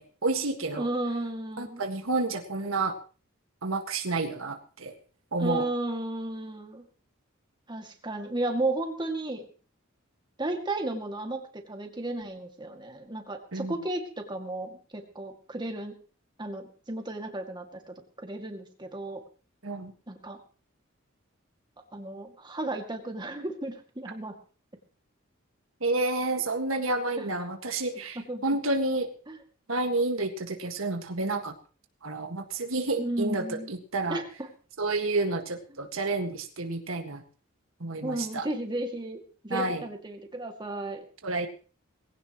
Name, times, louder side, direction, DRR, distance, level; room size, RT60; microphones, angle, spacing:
voice 1, 0.2-0.9 1.6-3.0 3.6-4.9 5.3-5.6 13.5-13.8 19.6-19.9 25.8-29.1 29.7-31.5 32.0-34.2 34.8-37.2 37.8-38.5 39.5-39.8 41.2-41.5, right 2 dB, 85° right, 6 dB, 1.8 m, -30 dB
voice 2, 0.8-1.8 5.4-6.8 7.7-9.5 10.4-15.9 16.4-19.2 20.1-20.4 21.9-24.4 27.2-27.3 28.3-28.6 29.3-29.4 33.0-33.7 34.1-34.5 38.0-41.0, right 2 dB, 20° right, 3 dB, 2.3 m, -34 dB
20.0 x 16.5 x 3.1 m, 0.37 s
head